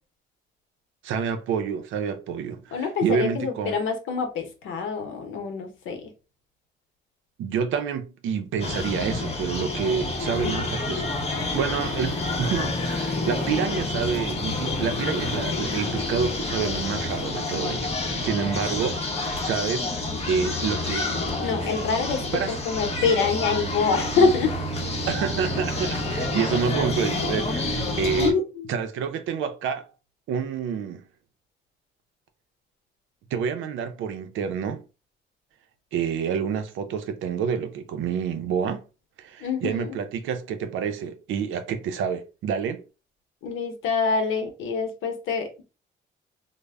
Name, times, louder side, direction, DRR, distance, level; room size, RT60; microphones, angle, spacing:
voice 1, 1.0-3.8 7.4-11.0 11.5-17.9 18.2-21.1 22.3-22.6 25.1-28.3 28.7-29.8 30.3-31.1 33.3-34.8 35.9-38.8 39.2-42.8, right 7 dB, 80° right, 0.5 m, -28 dB
voice 2, 2.7-6.0 21.4-24.6 28.1-28.7 39.4-40.0 43.4-45.7, left 5 dB, 80° left, 0.8 m, -25 dB
sound 1, 8.6-28.3, left 2 dB, 30° left, 0.7 m, -28 dB
2.1 x 2.0 x 3.4 m
cardioid pair, 90°, 20 cm